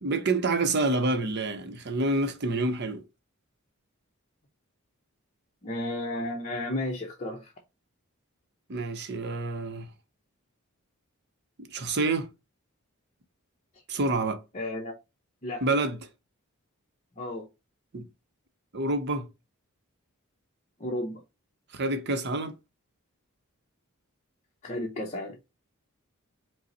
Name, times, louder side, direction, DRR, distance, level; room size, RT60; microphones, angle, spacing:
voice 1, 0.0-3.0 8.7-9.9 11.6-12.3 13.9-14.4 15.6-16.0 17.9-18.1 18.7-19.3 21.7-22.5, right 2 dB, 50° right, 0.7 m, -28 dB
voice 2, 5.6-7.5 14.5-15.0 15.4-15.6 17.2-17.5 20.8-21.2 24.6-25.4, left 1 dB, 30° left, 0.6 m, -33 dB
5.2 x 2.0 x 4.1 m
head